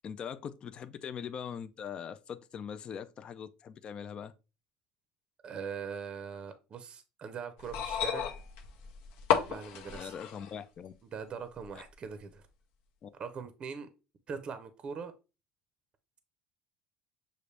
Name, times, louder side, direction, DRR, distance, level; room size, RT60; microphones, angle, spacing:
voice 1, 0.0-4.3 9.9-10.9 13.0-13.1, left 7 dB, 35° left, 0.4 m, -41 dB
voice 2, 5.4-8.4 9.5-10.1 11.1-12.5 13.2-13.9 14.3-15.1, right 6 dB, 30° right, 0.6 m, -41 dB
sound 1, 7.6-10.6 11.7-11.8, left 8 dB, 75° left, 0.8 m, -32 dB
6.5 x 2.5 x 3.2 m
cardioid pair, 135°, 3 cm